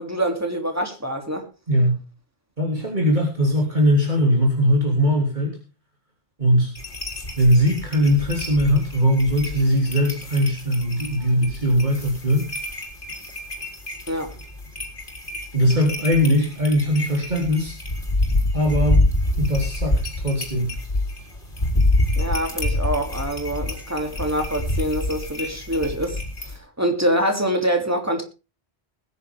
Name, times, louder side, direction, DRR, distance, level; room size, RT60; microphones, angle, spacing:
voice 1, 0.0-1.5 14.1-14.4 22.2-26.2 26.5-28.2, equal, 15° right, 3.0 m, -25 dB
voice 2, 1.7-2.0 2.6-5.6 6.4-6.7 7.4-12.5 15.5-17.8 18.5-19.0 19.4-20.7, equal, 45° right, 3.4 m, -20 dB
sound 1, 6.8-26.6, left 1 dB, 50° left, 3.7 m, -27 dB
20.5 x 10.5 x 3.6 m
omnidirectional pair, 1.1 m